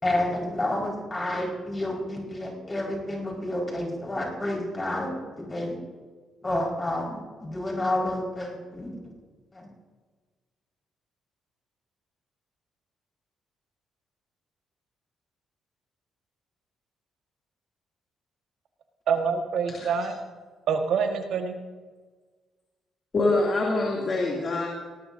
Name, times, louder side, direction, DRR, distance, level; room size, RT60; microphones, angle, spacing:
voice 1, 0.0-5.8 6.4-8.9 9.5-9.7, left 1 dB, 20° left, -3 dB, 4.8 m, -30 dB
voice 2, 19.1-20.2 20.7-21.6, right 6 dB, 75° right, 5 dB, 1.5 m, -26 dB
voice 3, 23.1-24.7, left 2 dB, 40° left, -2 dB, 2.6 m, -25 dB
19.0 x 18.5 x 2.7 m, 1.4 s
cardioid pair, 90°, 0 cm